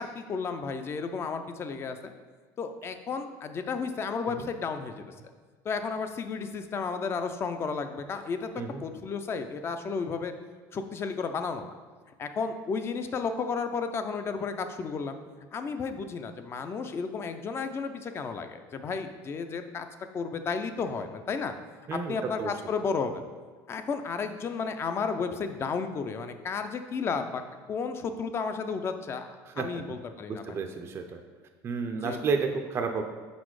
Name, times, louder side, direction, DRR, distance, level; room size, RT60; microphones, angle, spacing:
voice 1, 0.0-2.1 2.6-5.0 5.6-8.5 8.8-10.3 10.7-11.7 12.2-15.1 15.5-19.9 20.1-21.5 22.1-23.2 23.7-27.4 27.7-29.3 29.6-30.6 32.0-32.2, left 5 dB, 30° left, 8 dB, 0.4 m, -33 dB
voice 2, 21.9-22.5 29.5-29.7 30.3-31.2 31.6-33.0, right 5 dB, 30° right, 4 dB, 0.4 m, -31 dB
5.7 x 4.1 x 4.7 m, 1.5 s
cardioid pair, 130°, 8 cm